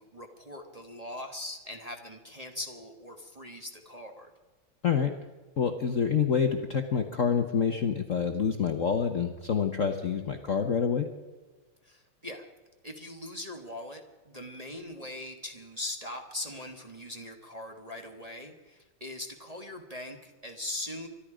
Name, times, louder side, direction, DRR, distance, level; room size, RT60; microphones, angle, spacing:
voice 1, 0.0-4.3 11.8-12.4 12.8-21.1, left 1 dB, 20° right, 2 dB, 1.2 m, -41 dB
voice 2, 5.6-11.1, left 6 dB, 50° left, 6 dB, 1.0 m, -27 dB
24.5 x 12.0 x 5.0 m, 1.2 s
omnidirectional pair, 2.3 m